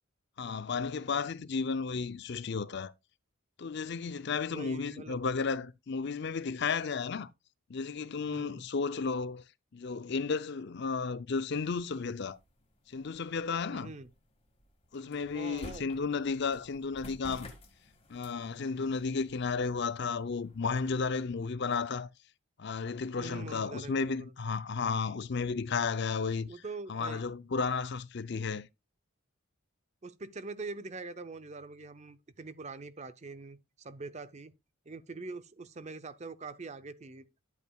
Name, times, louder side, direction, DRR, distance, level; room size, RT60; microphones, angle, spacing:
voice 1, 0.4-2.9 3.6-7.3 7.7-9.4 9.7-12.4 12.9-13.9 14.9-17.5 18.1-22.1 22.6-26.5 26.9-28.7, left 5 dB, 55° left, 0.5 m, -33 dB
voice 2, 4.5-5.2 8.2-8.7 13.7-14.1 15.3-15.9 23.2-24.6 26.5-27.2 30.0-34.5 34.9-37.3, right 3 dB, 30° right, 0.5 m, -44 dB
sound 1, 11.9-21.0, left 1 dB, 25° left, 1.8 m, -54 dB
11.0 x 8.3 x 2.3 m
head